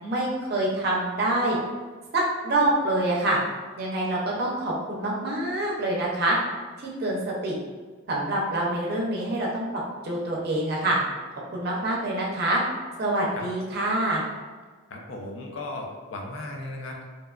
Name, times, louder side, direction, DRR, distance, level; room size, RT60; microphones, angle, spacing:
voice 1, 0.0-1.6 2.1-3.4 3.8-6.4 6.8-7.6 8.1-9.7 10.0-11.0 11.5-12.6 13.0-14.2, right 1 dB, 50° right, -3 dB, 0.5 m, -26 dB
voice 2, 14.9-17.0, left 2 dB, 70° left, 1 dB, 0.4 m, -36 dB
2.8 x 2.2 x 2.3 m, 1.4 s
head